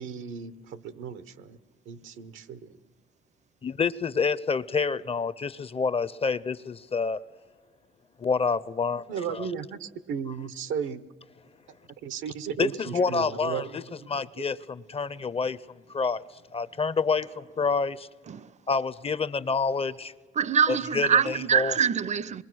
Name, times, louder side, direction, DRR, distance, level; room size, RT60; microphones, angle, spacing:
voice 1, 0.0-1.6 1.9-2.8 9.1-11.0 12.0-13.8, right 7 dB, 85° right, 1.0 m, -35 dB
voice 2, 3.6-7.2 8.2-9.5 12.6-13.8 14.1-15.6 15.9-16.2 16.5-18.1 18.7-20.1 21.0-21.1 21.5-21.7, left 5 dB, 30° left, 0.6 m, -28 dB
voice 3, 18.3-18.6 20.3-22.4, right 7 dB, 35° right, 0.6 m, -24 dB
26.0 x 21.5 x 6.2 m
cardioid pair, 90°, 20 cm